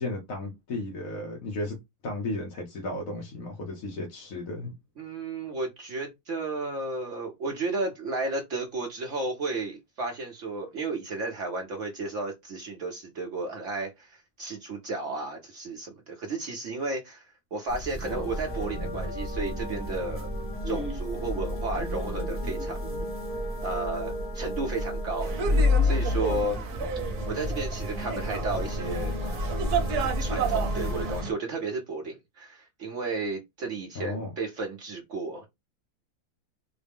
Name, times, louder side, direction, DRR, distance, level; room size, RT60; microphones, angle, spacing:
voice 1, 0.0-1.8 2.0-4.7 33.9-34.3, left 2 dB, 65° left, 1.2 m, -34 dB
voice 2, 5.0-20.3 20.6-22.8 23.6-26.6 27.3-29.1 29.9-35.5, right 3 dB, 60° right, 0.9 m, -33 dB
sound 1, 17.7-31.2, left 2 dB, 15° right, 0.5 m, -31 dB
sound 2, 18.0-31.2, left 1 dB, 45° left, 1.3 m, -39 dB
sound 3, 25.2-31.3, right 6 dB, 80° right, 1.2 m, -32 dB
3.9 x 2.1 x 3.4 m
omnidirectional pair, 1.6 m